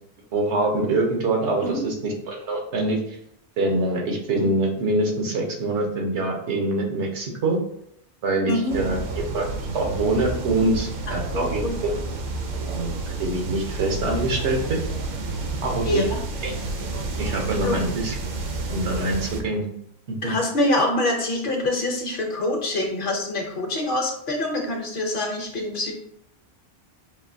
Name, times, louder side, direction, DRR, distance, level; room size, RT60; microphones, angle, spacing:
voice 1, 0.3-3.0 3.6-7.6 8.2-9.4 9.7-11.9 12.7-12.9 13.2-14.8 15.6-16.0 16.4-16.5 17.2-18.1 18.7-19.7 20.1-20.3, right 2 dB, 80° right, 1 dB, 1.1 m, -24 dB
voice 2, 8.5-9.0 11.3-11.7 15.8-16.2 17.6-17.8 20.2-25.9, left 1 dB, 55° left, 2 dB, 0.8 m, -25 dB
sound 1, 8.7-19.4, right 3 dB, 55° right, 0.7 m, -30 dB
5.3 x 2.6 x 2.6 m, 0.71 s
omnidirectional pair, 1.2 m